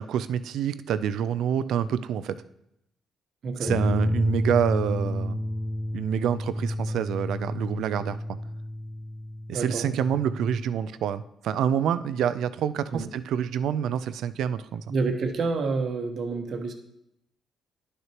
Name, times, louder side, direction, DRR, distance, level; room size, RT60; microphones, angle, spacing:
voice 1, 0.0-2.4 3.6-5.4 5.9-8.2 9.5-14.8, right 8 dB, 80° right, 14 dB, 0.4 m, -27 dB
voice 2, 3.4-3.7 9.5-9.9 12.9-13.1 14.9-16.7, right 4 dB, 60° right, 4 dB, 1.1 m, -28 dB
sound 1, 3.7-10.6, left 1 dB, 10° left, 0.7 m, -30 dB
10.5 x 6.5 x 3.0 m, 0.79 s
cardioid pair, 90°, 0 cm